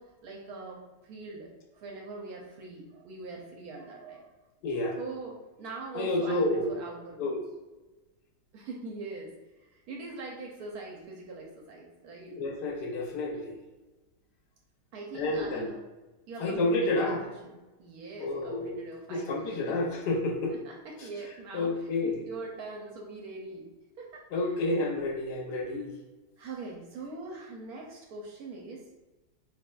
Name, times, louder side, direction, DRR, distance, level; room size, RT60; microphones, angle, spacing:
voice 1, 0.0-4.3 5.0-7.3 8.5-9.3 9.6-12.3 14.9-15.8 16.3-17.1 17.4-19.8 20.5-23.7 24.0-24.6 26.4-28.9, right 3 dB, 70° right, -1 dB, 1.0 m, -42 dB
voice 2, 4.6-5.0 5.9-6.7 7.2-7.4 12.2-13.5 15.1-15.7 16.4-17.2 18.2-18.8 19.1-20.5 21.5-22.2 24.3-25.9, left 2 dB, 75° left, 1 dB, 1.2 m, -29 dB
4.1 x 3.1 x 2.2 m, 1.1 s
omnidirectional pair, 1.9 m